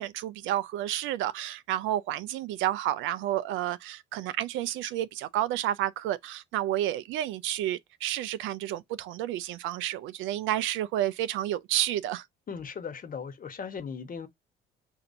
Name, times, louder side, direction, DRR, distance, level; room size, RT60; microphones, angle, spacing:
voice 1, 0.0-12.2, right 13 dB, 70° right, 0.5 m, -30 dB
voice 2, 12.5-14.3, left 6 dB, 40° left, 1.2 m, -38 dB
5.7 x 2.6 x 2.6 m
hypercardioid pair, 60°, 21 cm